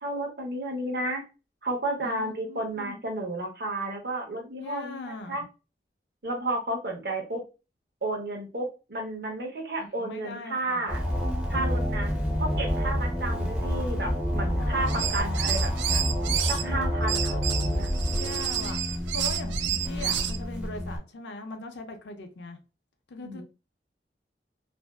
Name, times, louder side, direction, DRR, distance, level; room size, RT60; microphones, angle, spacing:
voice 1, 0.0-1.2 1.6-5.0 5.3-5.4 6.2-7.4 8.0-11.0 11.5-12.1 12.4-16.0 16.5-17.9 23.2-23.4, right 2 dB, 60° right, 0.7 m, -32 dB
voice 2, 2.0-3.0 4.6-5.4 9.8-11.0 14.4-15.1 16.6-17.4 18.1-22.6 23.1-23.4, left 2 dB, 85° left, 0.5 m, -41 dB
sound 1, 10.9-21.0, equal, 5° right, 0.4 m, -28 dB
sound 2, 14.8-16.6 17.1-20.4, right 9 dB, 90° right, 0.4 m, -30 dB
2.5 x 2.2 x 2.2 m
head